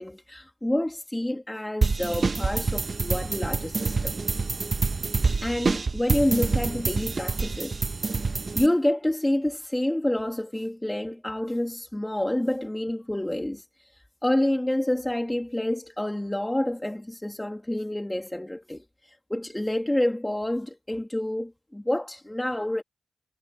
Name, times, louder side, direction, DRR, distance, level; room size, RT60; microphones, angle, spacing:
voice 1, 0.0-4.2 5.4-8.0 8.5-22.8, left 1 dB, 15° left, 2.6 m, -28 dB
sound 1, 1.8-8.7, right 4 dB, 50° right, 0.9 m, -27 dB
cardioid pair, 45°, 0 cm